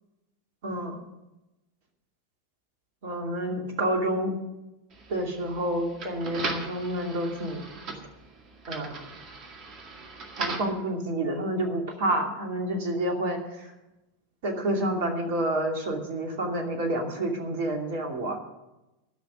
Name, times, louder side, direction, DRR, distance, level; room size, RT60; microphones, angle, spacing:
voice 1, 0.6-1.0 3.0-4.3 5.1-7.6 8.7-9.0 10.4-13.4 14.4-18.4, right 1 dB, 50° right, 2 dB, 2.6 m, -29 dB
sound 1, 4.9-10.8, right 3 dB, 35° right, 2.0 m, -38 dB
13.5 x 6.1 x 9.8 m, 0.98 s
figure-of-eight pair, 90°, 0 cm